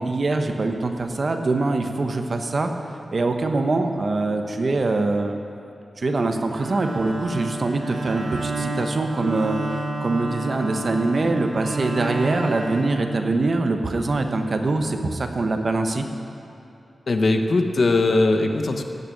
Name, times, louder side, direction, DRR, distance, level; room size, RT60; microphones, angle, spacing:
voice 1, 0.0-2.7 3.1-5.4 6.0-16.0, right 2 dB, 50° right, 5 dB, 1.0 m, -23 dB
Bowed string instrument, 6.5-13.7, right 2 dB, 65° right, 1.3 m, -30 dB
voice 2, 17.1-18.8, left 2 dB, 55° left, 5 dB, 1.0 m, -20 dB
15.0 x 6.7 x 8.6 m, 2.7 s
wide cardioid pair, 120°, 0 cm